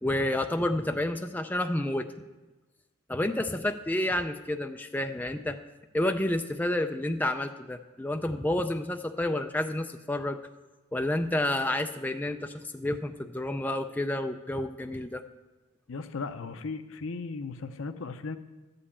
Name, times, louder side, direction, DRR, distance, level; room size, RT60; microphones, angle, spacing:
voice 1, 0.0-2.1 3.1-5.6 5.9-10.4 10.9-15.2, left 1 dB, 10° left, 6 dB, 0.4 m, -30 dB
voice 2, 15.9-18.4, left 4 dB, 80° left, 10 dB, 0.6 m, -36 dB
12.5 x 5.3 x 8.4 m, 1.1 s
head